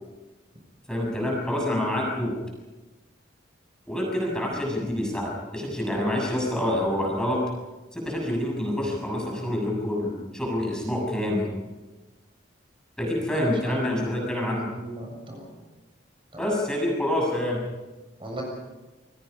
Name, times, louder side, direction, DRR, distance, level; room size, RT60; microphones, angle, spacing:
voice 1, 0.9-2.3 3.9-7.4 7.9-11.5 13.0-14.7 16.4-17.6, left 1 dB, 5° left, -2 dB, 6.9 m, -27 dB
voice 2, 13.3-15.5 16.3-16.4 18.2-18.4, right 1 dB, 30° right, 0 dB, 6.9 m, -38 dB
29.0 x 22.0 x 5.5 m, 1.2 s
head